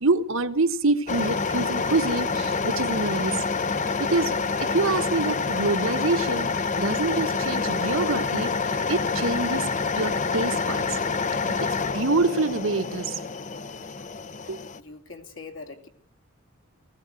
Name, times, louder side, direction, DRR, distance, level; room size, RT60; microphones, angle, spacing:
voice 1, 0.0-3.4 3.7-6.5 6.8-8.5 8.9-9.7 9.9-11.0 11.5-13.2 14.5-14.6, right 3 dB, 70° right, 1.4 m, -26 dB
sound 1, 1.1-14.8, left 4 dB, 35° left, 0.8 m, -27 dB
voice 2, 14.8-15.9, left 4 dB, 65° left, 2.8 m, -42 dB
19.5 x 16.5 x 9.1 m
head